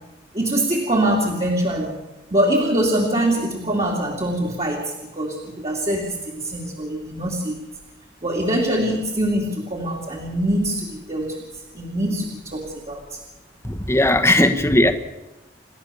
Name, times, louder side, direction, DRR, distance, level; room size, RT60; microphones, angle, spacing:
voice 1, 0.3-1.9 2.3-7.6 8.2-11.4 11.7-13.2 14.3-14.4, right 1 dB, 35° right, -1 dB, 2.9 m, -23 dB
voice 2, 13.6-14.9, left 1 dB, 15° left, 8 dB, 1.4 m, -17 dB
28.5 x 13.5 x 7.1 m, 1.0 s
head